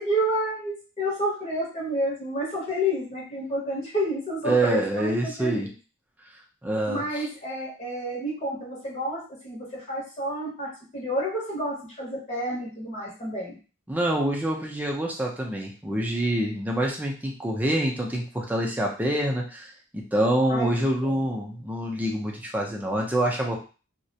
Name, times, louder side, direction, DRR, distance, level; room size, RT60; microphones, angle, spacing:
voice 1, 0.0-5.7 6.9-13.6 20.5-20.7 21.0-21.2, equal, 30° left, -3 dB, 0.8 m, -30 dB
voice 2, 4.4-5.7 6.6-7.2 13.9-23.6, right 1 dB, 10° right, -1 dB, 0.4 m, -26 dB
2.4 x 2.1 x 2.7 m, 0.35 s
head